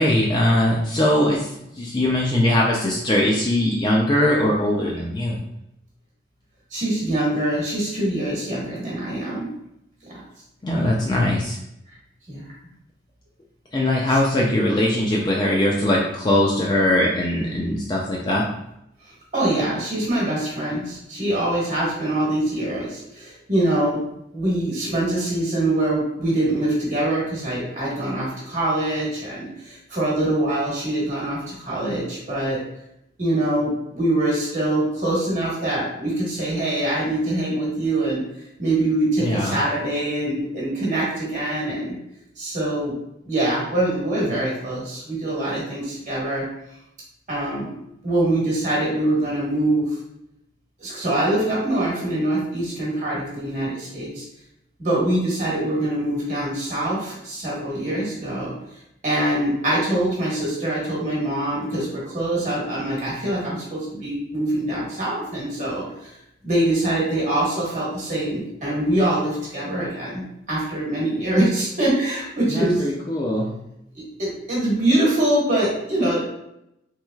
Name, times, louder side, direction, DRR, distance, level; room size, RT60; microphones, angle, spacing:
voice 1, 0.0-1.5 1.8-5.4 10.6-11.6 13.7-18.5 39.2-39.5 72.5-73.5, left 1 dB, 25° left, -2 dB, 0.3 m, -21 dB
voice 2, 6.7-9.4 12.3-12.5 19.3-24.0 24.3-32.6 33.2-38.2 38.6-42.0 42.4-42.9 43.2-46.4 47.3-47.8 48.0-49.9 50.8-54.2 54.8-58.5 59.0-66.1 66.4-72.9 74.2-76.2, right 1 dB, 40° right, -6 dB, 1.2 m, -24 dB
3.2 x 3.1 x 2.3 m, 0.81 s
head